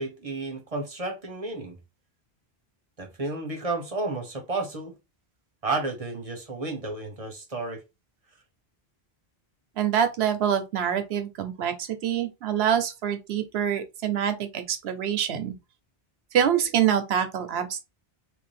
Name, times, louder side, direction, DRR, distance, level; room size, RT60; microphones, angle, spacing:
voice 1, 0.0-1.8 3.0-4.9 5.6-7.8, right 3 dB, 35° right, 0.8 m, -32 dB
voice 2, 9.8-15.5 16.3-17.8, right 9 dB, 80° right, 0.9 m, -25 dB
3.1 x 2.6 x 3.1 m
omnidirectional pair, 1.1 m